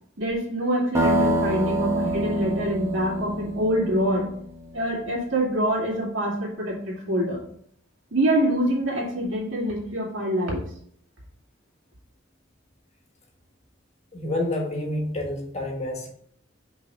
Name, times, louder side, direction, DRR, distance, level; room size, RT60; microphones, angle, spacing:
voice 1, 0.2-4.3 4.7-7.4 8.1-10.6, right 1 dB, 75° right, -3 dB, 2.3 m, -25 dB
sound 1, 0.9-4.7, right 1 dB, 15° right, 1.2 m, -26 dB
voice 2, 14.1-16.1, left 1 dB, 35° left, 1 dB, 1.5 m, -29 dB
5.5 x 4.0 x 5.3 m, 0.63 s
head